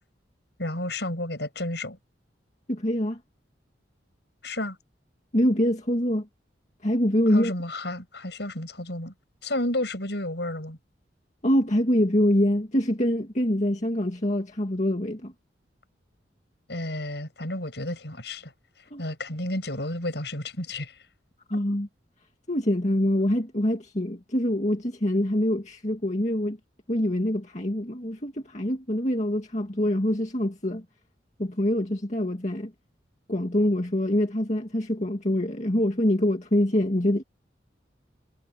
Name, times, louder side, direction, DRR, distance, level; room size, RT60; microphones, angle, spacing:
voice 1, 0.6-2.0 4.4-4.8 7.3-9.1 9.4-10.8 16.7-18.5 19.0-20.9, left 1 dB, 65° left, 6.8 m, -31 dB
voice 2, 2.7-3.2 5.3-6.3 6.8-7.5 11.4-15.3 18.9-19.0 21.5-21.9 22.5-26.6 26.9-30.8 31.4-32.7 33.3-37.2, left 1 dB, 40° left, 2.1 m, -25 dB
head